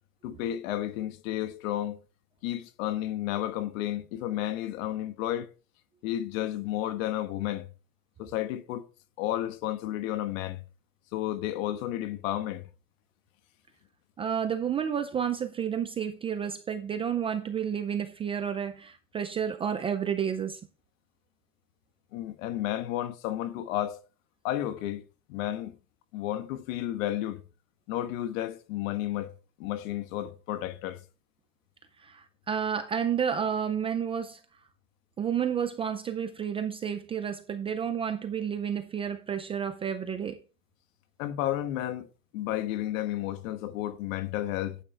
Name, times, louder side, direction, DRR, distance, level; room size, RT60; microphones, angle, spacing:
voice 1, 0.2-2.0 2.4-5.5 6.0-7.7 8.2-8.9 9.2-10.6 11.1-12.7 22.1-24.0 24.4-25.0 25.3-25.8 26.1-27.4 27.9-29.3 29.6-31.0 41.2-42.1 42.3-44.8, left 13 dB, 65° left, 1.5 m, -32 dB
voice 2, 14.2-20.6 32.0-34.4 35.2-40.4, right 8 dB, 15° right, 0.4 m, -31 dB
11.5 x 8.8 x 3.3 m
supercardioid pair, 155°, 43 cm